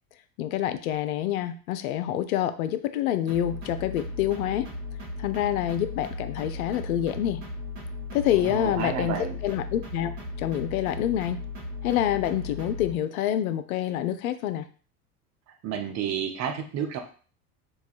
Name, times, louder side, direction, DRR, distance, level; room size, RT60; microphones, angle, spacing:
voice 1, 0.4-4.7 5.2-7.4 8.1-11.4 11.8-14.7, left 11 dB, 65° left, 12 dB, 0.5 m, -27 dB
sound 1, 3.3-12.9, left 3 dB, 80° right, 1.0 m, -36 dB
voice 2, 8.3-9.3 15.6-17.0, right 8 dB, 35° right, 4 dB, 0.6 m, -31 dB
4.6 x 2.3 x 2.4 m, 0.41 s
figure-of-eight pair, 75°, 47 cm